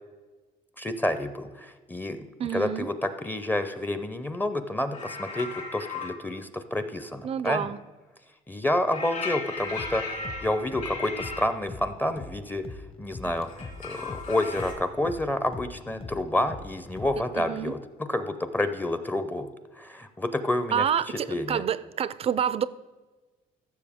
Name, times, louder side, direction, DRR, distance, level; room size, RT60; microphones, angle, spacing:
voice 1, 0.8-7.7 8.5-19.5 19.7-21.6, left 1 dB, 10° left, 0.6 m, -29 dB
voice 2, 2.4-2.9 7.2-7.8 17.4-17.7 20.7-22.7, right 8 dB, 35° right, 0.4 m, -28 dB
sound 1, 4.9-6.2 8.9-11.5 13.4-14.7, left 3 dB, 50° left, 2.4 m, -36 dB
sound 2, 9.8-17.4, left 3 dB, 35° left, 0.9 m, -43 dB
15.0 x 6.8 x 3.5 m
cardioid pair, 110°, 17 cm